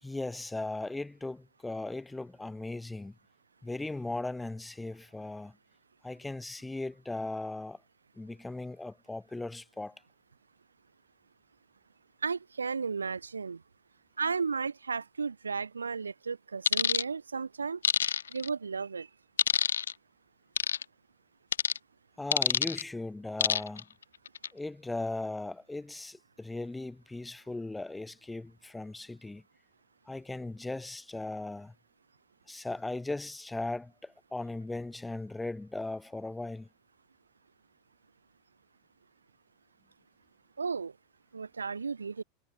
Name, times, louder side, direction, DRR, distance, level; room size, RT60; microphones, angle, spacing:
voice 1, 0.0-3.2 3.6-5.6 6.0-7.8 8.2-10.0 22.2-23.9 24.5-29.4 30.1-31.7 32.5-36.7, left 2 dB, 10° left, 3.6 m, -38 dB
voice 2, 12.2-13.6 14.2-17.8 18.3-19.1 40.6-40.9 41.3-42.2, right 5 dB, 80° right, 1.5 m, -34 dB
sound 1, 16.7-17.0 17.8-18.5 19.4-19.9 20.6-20.8 21.5-21.8 22.3-22.8 23.4-23.8 24.3-24.5, left 7 dB, 75° left, 0.5 m, -26 dB
figure-of-eight pair, 85°, 0 cm